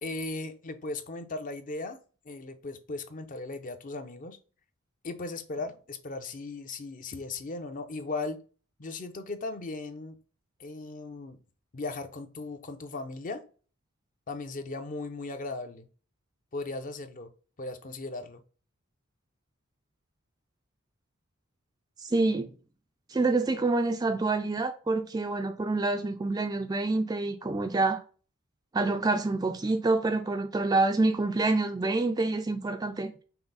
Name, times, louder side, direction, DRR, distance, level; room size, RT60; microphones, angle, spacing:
voice 1, 0.0-2.0 2.3-4.4 5.0-8.4 8.8-10.2 10.6-11.4 11.7-13.4 14.3-15.9 16.5-17.3 17.6-18.4, left 3 dB, 35° left, 0.5 m, -37 dB
voice 2, 22.0-22.5 23.1-28.0 28.7-33.1, right 3 dB, 15° right, 0.3 m, -27 dB
5.7 x 2.0 x 3.9 m
head